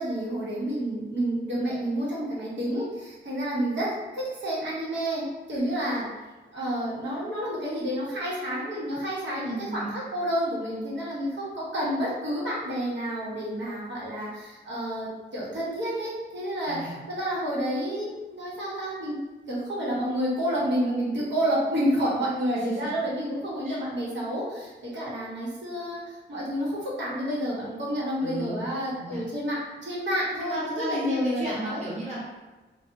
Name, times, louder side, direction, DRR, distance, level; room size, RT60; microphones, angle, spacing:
voice 1, 0.0-6.1 6.5-19.2 19.5-31.8, equal, 65° right, -7 dB, 0.9 m, -29 dB
voice 2, 9.4-10.0 16.7-17.1 22.6-22.9 23.6-23.8 28.2-28.6 29.0-29.2 30.4-32.2, right 1 dB, 35° right, -7 dB, 0.8 m, -34 dB
2.7 x 2.2 x 2.5 m, 1.2 s
wide cardioid pair, 110°, 20 cm